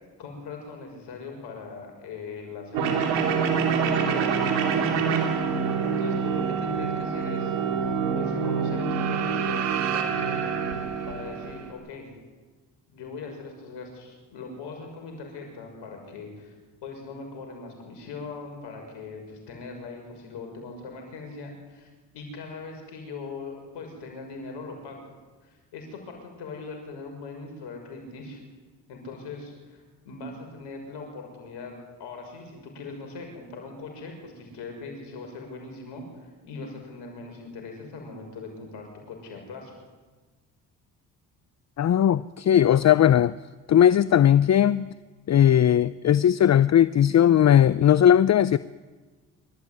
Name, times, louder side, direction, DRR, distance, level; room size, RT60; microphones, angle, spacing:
voice 1, 0.2-5.0 5.4-5.5 5.8-7.5 8.1-12.1 12.9-21.9 22.1-25.0 25.4-28.4 28.9-31.7 32.0-39.7, left 4 dB, 80° left, 3 dB, 6.5 m, -40 dB
sound 1, 2.7-11.7, right 6 dB, 85° right, 2.9 m, -26 dB
voice 2, 41.8-43.3 43.7-44.9 45.3-48.6, left 10 dB, 40° left, 17 dB, 0.6 m, -18 dB
25.0 x 13.5 x 9.5 m, 1.3 s
supercardioid pair, 55°, 41 cm